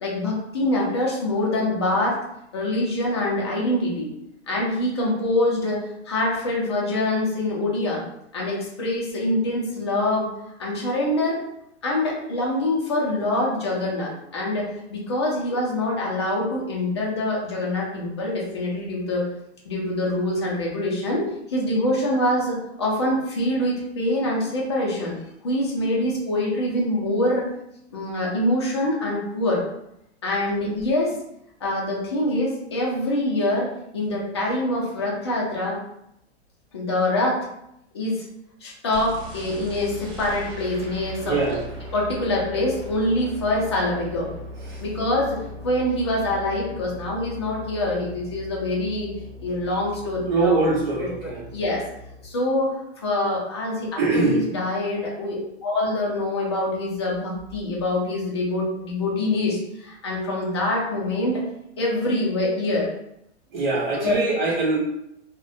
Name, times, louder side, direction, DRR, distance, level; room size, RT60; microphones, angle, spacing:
voice 1, 0.0-2.2 2.5-4.1 4.5-8.0 8.3-10.3 10.6-11.4 11.8-19.3 19.6-25.2 25.4-27.5 27.9-29.6 30.2-31.1 31.6-35.8 36.7-37.5 37.9-38.2 38.6-41.6 41.9-44.3 44.8-49.1 49.4-50.6 51.0-51.8 52.2-52.7 53.0-61.4 61.8-62.9 63.9-64.2, left 1 dB, 25° left, -4 dB, 0.4 m, -25 dB
sound 1, 38.9-52.2, left 1 dB, 75° right, 1.0 m, -39 dB
voice 2, 41.2-41.6 50.3-51.4 54.0-54.4 63.5-64.8, right 3 dB, 40° right, -3 dB, 0.7 m, -22 dB
2.3 x 2.1 x 2.6 m, 0.79 s
hypercardioid pair, 175°, 34 cm